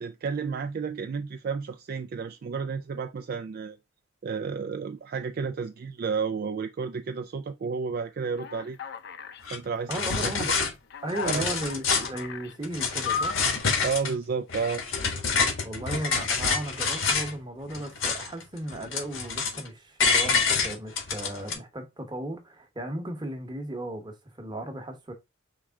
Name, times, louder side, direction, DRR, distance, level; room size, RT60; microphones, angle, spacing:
voice 1, 0.0-3.8 4.2-8.8 9.5-9.9 10.2-10.3 11.2-11.5 13.8-14.8, right 5 dB, 45° right, 0.3 m, -31 dB
Alarm, 8.4-9.4 9.9-10.4 10.9-12.5 13.1-13.6, left 6 dB, 55° left, 0.5 m, -35 dB
sound 1, 9.4-9.6 9.9-10.7 11.1-12.2 12.6-14.1 14.5-17.3 17.7-18.4 18.7-19.7 20.0-21.5, left 5 dB, 75° left, 1.5 m, -27 dB
voice 2, 9.9-10.5 11.0-13.4 15.6-25.1, right 1 dB, 20° right, 1.0 m, -35 dB
4.8 x 3.2 x 3.5 m
head